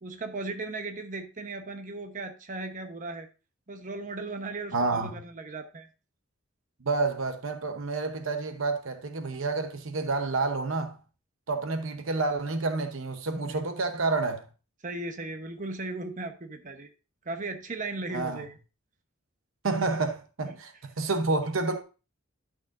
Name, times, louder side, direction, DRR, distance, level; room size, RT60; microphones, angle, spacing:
voice 1, 0.0-3.3 3.7-5.9 13.3-13.6 14.8-16.9 17.2-18.6 20.4-20.6, right 2 dB, 40° right, 1.0 m, -37 dB
voice 2, 4.7-5.2 6.8-11.0 11.5-14.5 18.1-18.4 19.6-20.7 21.0-21.8, right 3 dB, 65° right, 0.9 m, -29 dB
11.5 x 6.3 x 2.5 m
head